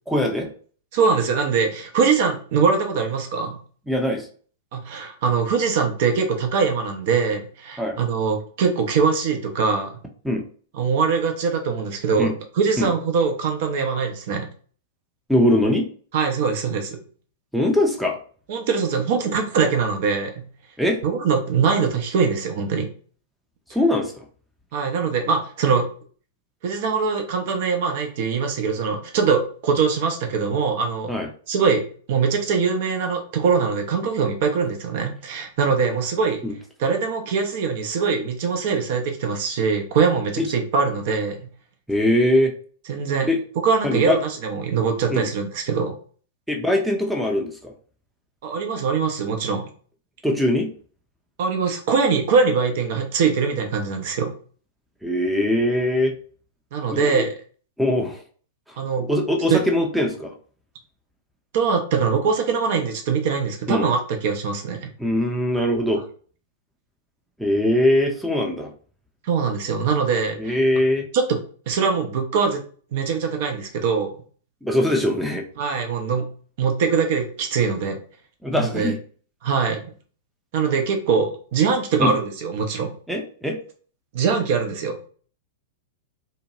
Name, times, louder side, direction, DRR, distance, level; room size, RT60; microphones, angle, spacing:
voice 1, 0.1-0.5 3.9-4.3 7.8-8.0 10.2-10.4 12.2-12.3 12.8-12.9 15.3-15.8 17.5-18.2 20.8-21.0 23.7-24.2 31.1-31.3 36.4-36.5 40.4-40.5 41.9-42.5 43.3-43.4 43.8-44.2 45.1-45.3 46.5-47.7 50.2-50.7 55.0-56.1 56.9-57.3 57.8-58.2 59.0-60.3 63.7-63.9 65.0-66.0 67.4-68.7 70.4-71.1 74.6-75.4 78.4-79.0 82.0-82.1 83.1-83.6, left 1 dB, ahead, 1 dB, 0.5 m, -21 dB
voice 2, 0.9-3.6 4.7-10.0 10.7-14.5 16.1-17.0 18.5-20.4 21.0-22.9 24.7-25.9 26.6-31.1 31.5-31.8 32.1-36.4 36.8-41.5 42.9-43.3 43.6-45.9 48.4-49.7 51.4-54.3 56.7-57.3 58.8-59.1 59.5-59.6 61.5-64.9 69.2-70.6 71.1-71.2 71.7-72.6 72.9-74.1 75.6-76.3 76.6-78.0 78.5-78.9 79.4-79.9 80.5-82.9 84.1-85.0, right 5 dB, 50° right, 4 dB, 0.6 m, -22 dB
2.7 x 2.2 x 2.8 m, 0.44 s
figure-of-eight pair, 100°, 0 cm